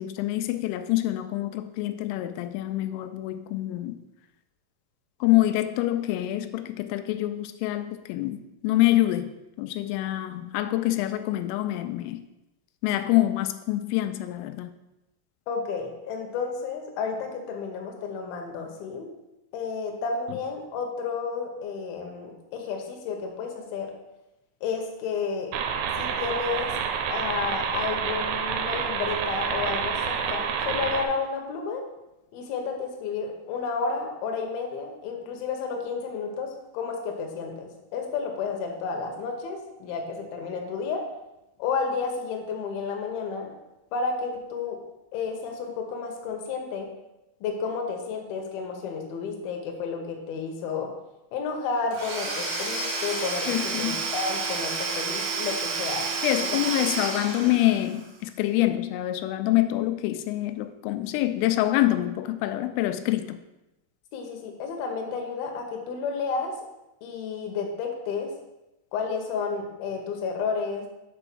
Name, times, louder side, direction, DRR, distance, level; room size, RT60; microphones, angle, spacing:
voice 1, 0.0-4.0 5.2-12.2 12.8-14.7 53.5-54.1 56.2-63.4, left 15 dB, 90° left, 10 dB, 3.1 m, -26 dB
voice 2, 15.5-19.1 19.5-23.9 24.6-25.5 26.0-26.8 27.1-31.8 32.3-41.1 41.6-43.5 43.9-44.8 45.1-46.9 47.4-50.9 51.3-56.1 56.4-56.5 64.1-66.6 67.0-68.3 68.9-70.9, left 5 dB, 70° left, 2 dB, 2.3 m, -31 dB
sound 1, 25.5-31.1, right 7 dB, 85° right, 2.9 m, -28 dB
Domestic sounds home sounds / Tools, 51.9-58.0, right 4 dB, 50° right, 2.2 m, -30 dB
7.0 x 4.4 x 6.1 m, 0.96 s
omnidirectional pair, 5.6 m